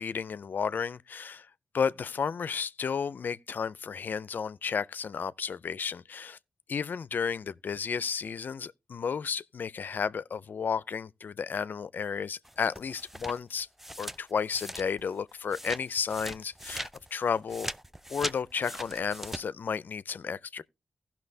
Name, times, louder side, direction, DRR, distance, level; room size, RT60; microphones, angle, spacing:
voice 1, 0.0-1.5 1.7-6.4 6.7-13.7 14.0-17.7 18.1-20.6, left 6 dB, 65° left, 0.4 m, -32 dB
sound 1, 12.4-15.2 15.5-19.4, equal, 5° right, 0.4 m, -40 dB
16.0 x 5.9 x 2.6 m
cardioid pair, 55°, 3 cm